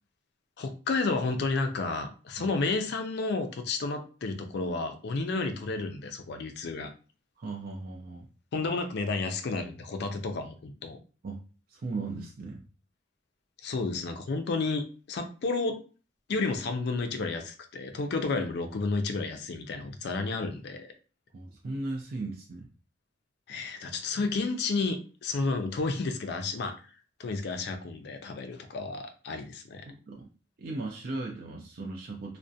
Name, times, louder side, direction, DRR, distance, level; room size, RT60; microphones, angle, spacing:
voice 1, 0.6-6.9 8.5-11.0 13.6-15.8 16.3-20.9 23.5-26.8 27.2-29.9, left 3 dB, 65° left, 6 dB, 0.4 m, -31 dB
voice 2, 7.4-8.3 11.2-11.4 11.7-12.6 21.3-22.7 29.9-30.3 30.6-32.4, right 3 dB, 55° right, 0 dB, 0.4 m, -37 dB
2.4 x 2.1 x 2.6 m, 0.36 s
head